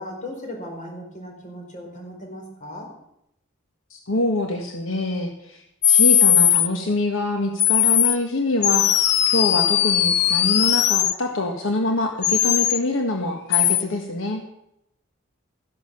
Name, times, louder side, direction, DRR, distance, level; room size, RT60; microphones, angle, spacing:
voice 1, 0.0-2.9, left 1 dB, 40° left, 1 dB, 4.8 m, -37 dB
voice 2, 3.9-8.9 9.3-14.4, left 2 dB, 80° left, 3 dB, 1.6 m, -25 dB
sound 1, 5.8-6.7 7.6-8.2 8.6-11.1 12.2-12.8 13.5-13.8, left 11 dB, 60° left, 0.7 m, -18 dB
14.5 x 11.0 x 6.8 m, 0.80 s
head